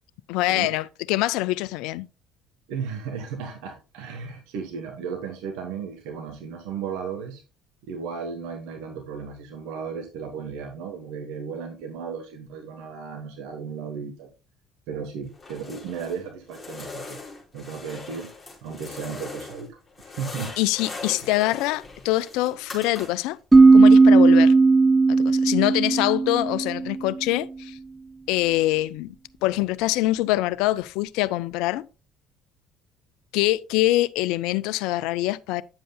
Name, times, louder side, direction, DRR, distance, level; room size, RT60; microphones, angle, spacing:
voice 1, 0.3-2.1 20.6-23.4 23.7-24.5 25.1-27.8 28.3-29.1 29.4-31.9 33.3-35.6, left 17 dB, 65° left, 0.3 m, -24 dB
voice 2, 2.7-7.4 7.8-14.3 14.9-17.2 17.5-18.3 18.6-19.8 20.0-20.6, right 6 dB, 65° right, 1.1 m, -35 dB
sound 1, 15.3-16.2 16.5-19.7 19.9-23.4, left 3 dB, 15° left, 4.5 m, -40 dB
sound 2, 23.5-27.1, right 4 dB, 15° right, 0.3 m, -15 dB
9.6 x 7.6 x 2.2 m
figure-of-eight pair, 55°, 0 cm